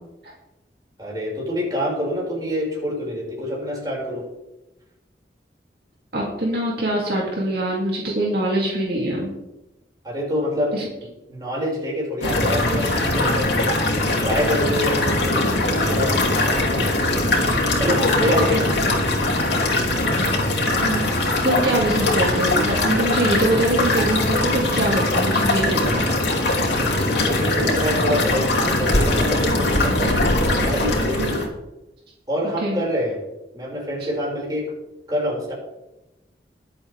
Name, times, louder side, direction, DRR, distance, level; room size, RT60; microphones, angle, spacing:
voice 1, 1.0-4.3 10.0-13.5 14.2-17.0 17.8-18.9 26.7-30.2 30.5-31.4 32.3-33.2 33.5-34.7 35.1-35.5, equal, 20° right, -4 dB, 5.8 m, -26 dB
voice 2, 6.1-9.3 10.7-10.8 18.1-18.6 20.8-21.0 21.4-26.1 31.2-31.3 32.6-32.8, right 1 dB, 60° right, -3 dB, 2.8 m, -23 dB
sound 1, 12.2-31.5, left 2 dB, 80° left, 3.2 m, -21 dB
22.0 x 8.3 x 3.5 m, 0.95 s
head